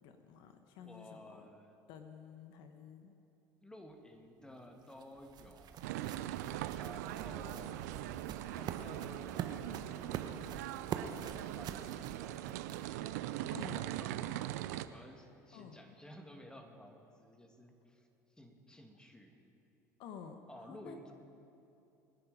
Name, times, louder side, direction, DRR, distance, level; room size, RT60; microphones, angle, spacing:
voice 1, 0.0-1.5 1.9-3.1 13.5-13.9 15.5-15.9 20.0-21.1, left 7 dB, 60° left, 7 dB, 1.1 m, -51 dB
voice 2, 0.8-1.8 3.6-6.2 6.7-7.9 8.5-10.4 10.9-12.6 13.2-14.6 14.9-18.1 18.4-19.4 20.5-21.1, equal, 10° left, 4 dB, 2.2 m, -54 dB
sound 1, 4.5-13.1, right 8 dB, 50° right, 1.1 m, -45 dB
sound 2, 5.8-14.9, right 13 dB, 75° right, 0.6 m, -41 dB
24.5 x 10.0 x 5.1 m, 2.9 s
hypercardioid pair, 75°, 9 cm